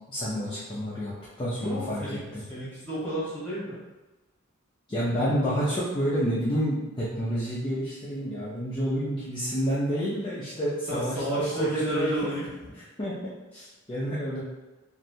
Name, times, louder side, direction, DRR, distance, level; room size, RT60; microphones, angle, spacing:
voice 1, 0.1-2.4 4.9-12.3 13.0-13.3 13.9-14.4, equal, 25° left, -8 dB, 0.5 m, -29 dB
voice 2, 1.6-2.2 2.5-3.8 10.9-12.5 13.5-13.7, right 1 dB, 10° left, -10 dB, 1.4 m, -31 dB
3.2 x 2.6 x 2.7 m, 1.1 s
head